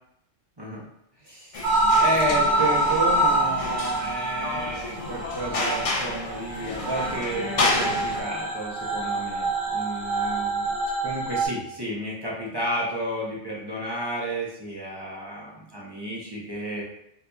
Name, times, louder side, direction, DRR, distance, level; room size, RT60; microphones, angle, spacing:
voice 1, 1.2-1.6 2.0-10.7 11.0-16.8, right 1 dB, 25° right, -5 dB, 0.6 m, -31 dB
sound 1, 1.5-8.2, left 2 dB, 65° left, 0.3 m, -30 dB
sound 2, 1.6-11.5, right 2 dB, 45° right, 1.0 m, -26 dB
4.0 x 2.9 x 2.2 m, 0.77 s
omnidirectional pair, 1.2 m